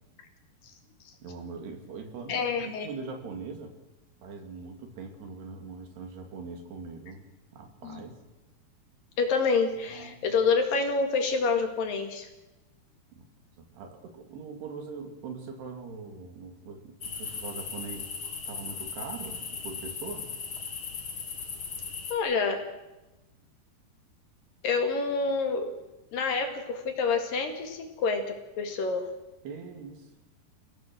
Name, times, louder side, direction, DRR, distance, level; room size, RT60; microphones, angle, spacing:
voice 1, 1.2-3.7 4.2-8.2 9.9-10.3 13.1-13.3 13.6-18.1 18.5-20.6 29.4-30.1, right 4 dB, 80° right, 5 dB, 4.6 m, -42 dB
voice 2, 2.3-2.9 7.8-8.0 9.2-12.3 22.1-22.7 24.6-25.7 26.1-29.1, left 4 dB, 60° left, 5 dB, 3.5 m, -27 dB
sound 1, 17.0-22.1, left 5 dB, 40° left, 2.3 m, -38 dB
29.0 x 17.5 x 6.2 m, 1.0 s
omnidirectional pair, 4.7 m